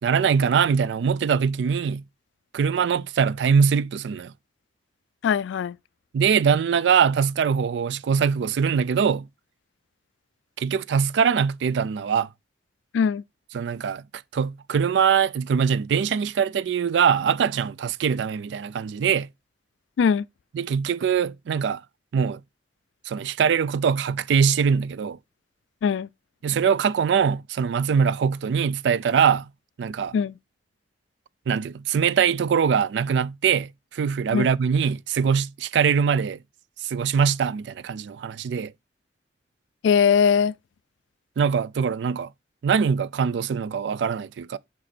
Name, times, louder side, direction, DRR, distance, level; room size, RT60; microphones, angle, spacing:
voice 1, 0.0-2.0 2.5-4.3 6.1-9.3 10.6-12.3 13.5-14.0 14.3-19.3 20.5-21.8 22.1-22.4 23.1-25.2 26.4-29.5 29.8-30.1 31.5-36.4 36.8-38.7 41.4-42.3 42.6-44.6, right 6 dB, 70° right, 0.3 m, -22 dB
voice 2, 5.2-5.8 12.9-13.2 20.0-20.2 25.8-26.1 30.1-30.3 34.3-34.5 39.8-40.5, left 7 dB, 90° left, 0.3 m, -20 dB
5.4 x 5.1 x 4.2 m
head